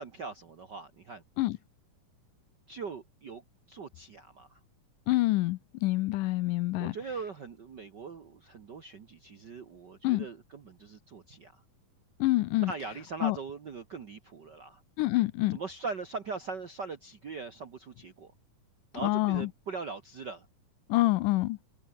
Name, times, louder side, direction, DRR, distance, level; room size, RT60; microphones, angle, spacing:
voice 1, 0.0-1.2 2.7-4.6 6.8-11.6 12.6-14.8 15.5-18.3 18.9-20.5, right 4 dB, 55° right, 1.2 m, -41 dB
voice 2, 5.1-7.0 10.0-10.3 12.2-12.7 13.2-13.4 15.0-15.6 19.0-19.5 20.9-21.6, left 18 dB, 80° left, 2.1 m, -26 dB
omnidirectional pair, 3.9 m